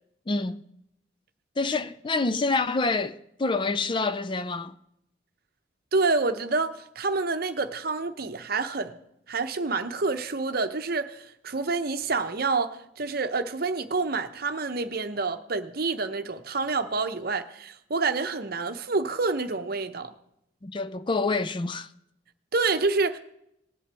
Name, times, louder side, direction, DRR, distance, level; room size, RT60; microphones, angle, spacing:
voice 1, 0.3-0.6 1.6-4.8 20.6-21.9, left 3 dB, 25° left, 0.4 m, -27 dB
voice 2, 5.9-9.0 9.3-20.1 22.5-23.2, right 3 dB, 50° right, 0.8 m, -28 dB
19.0 x 7.9 x 3.4 m
head